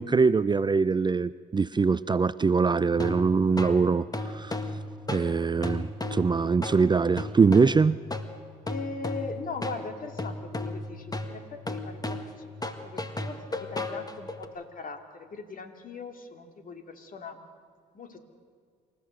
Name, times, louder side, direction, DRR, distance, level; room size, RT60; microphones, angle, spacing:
voice 1, 0.0-4.6 5.1-8.0, right 5 dB, 25° right, 17 dB, 0.5 m, -23 dB
sound 1, 3.0-14.5, left 2 dB, 20° left, 1.9 m, -35 dB
voice 2, 8.6-17.4 17.9-18.2, left 4 dB, 50° left, 7 dB, 2.5 m, -40 dB
28.0 x 15.0 x 6.6 m, 2.1 s
hypercardioid pair, 55°, 18 cm